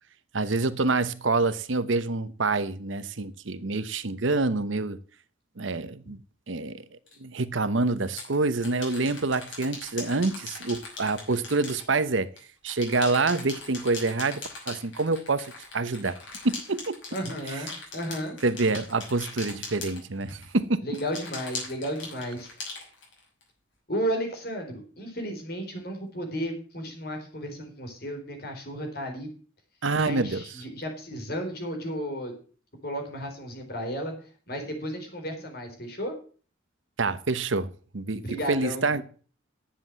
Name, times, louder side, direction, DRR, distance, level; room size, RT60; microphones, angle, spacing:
voice 1, 0.3-5.0 5.6-6.2 6.5-6.8 7.2-12.3 12.6-16.2 16.4-17.0 17.5-17.6 18.4-20.8 29.8-30.4 37.0-39.0, right 3 dB, 75° right, 0.9 m, -27 dB
sound 1, 7.1-7.2 8.0-12.4 12.7-20.5 20.9-23.4, left 3 dB, 80° left, 5.9 m, -40 dB
voice 2, 17.1-18.4 20.8-22.5 23.9-29.3 30.1-32.3 32.8-34.1 34.5-36.1 38.2-39.0, equal, 50° left, 3.9 m, -33 dB
10.5 x 7.6 x 7.5 m
head